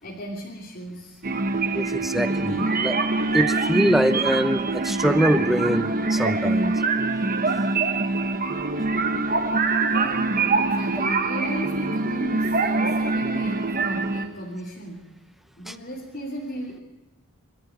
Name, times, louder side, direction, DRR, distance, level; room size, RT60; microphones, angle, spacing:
voice 1, 0.0-1.2 9.8-15.0 15.6-16.8, equal, 40° left, -3 dB, 3.1 m, -35 dB
sound 1, 1.2-14.3, right 3 dB, 40° right, 1.3 m, -24 dB
voice 2, 1.7-3.0 3.3-6.8 15.7-15.8, equal, ahead, 10 dB, 0.8 m, -23 dB
Wind instrument woodwind instrument, 2.2-6.6, left 2 dB, 85° left, 4.7 m, -44 dB
25.5 x 14.0 x 9.5 m, 1.1 s
head